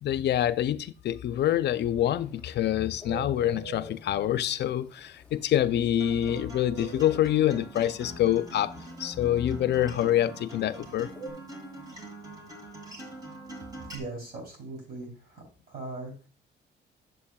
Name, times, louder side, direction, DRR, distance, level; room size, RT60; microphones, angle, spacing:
voice 1, 0.0-8.7 9.0-11.1, left 12 dB, 65° left, 0.4 m, -26 dB
Bird, 1.4-11.3, right 5 dB, 5° left, 0.8 m, -44 dB
Acoustic guitar, 6.0-14.0, right 1 dB, 20° right, 2.5 m, -44 dB
voice 2, 13.9-16.3, right 2 dB, 55° right, 3.2 m, -40 dB
8.4 x 7.4 x 2.2 m
cardioid pair, 110°, 19 cm